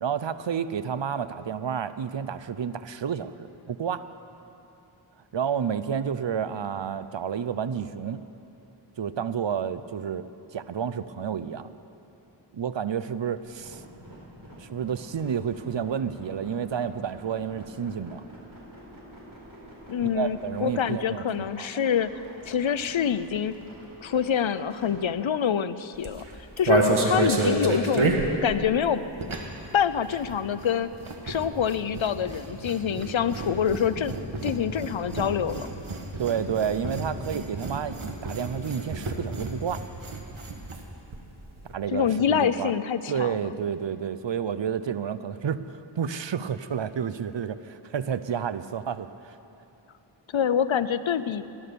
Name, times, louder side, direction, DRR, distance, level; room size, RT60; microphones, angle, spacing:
voice 1, 0.0-4.1 5.3-8.2 9.0-10.3 10.5-11.7 12.5-13.8 14.6-18.2 20.1-21.7 36.2-39.8 41.7-42.7 43.1-49.4, right 7 dB, 65° right, 13 dB, 0.6 m, -30 dB
sound 1, 13.4-25.0, right 1 dB, 45° right, 4.1 m, -48 dB
voice 2, 19.9-22.1 22.5-23.6 24.0-26.2 26.6-29.0 29.7-30.9 31.2-34.1 34.4-35.7 41.9-43.4 50.3-51.4, left 8 dB, 75° left, 13 dB, 0.6 m, -26 dB
sound 2, 25.9-29.7 29.9-40.8 41.1-41.2 41.4-41.7, right 2 dB, 85° right, 1.6 m, -29 dB
16.5 x 11.0 x 6.8 m, 3.0 s
wide cardioid pair, 45°, 48 cm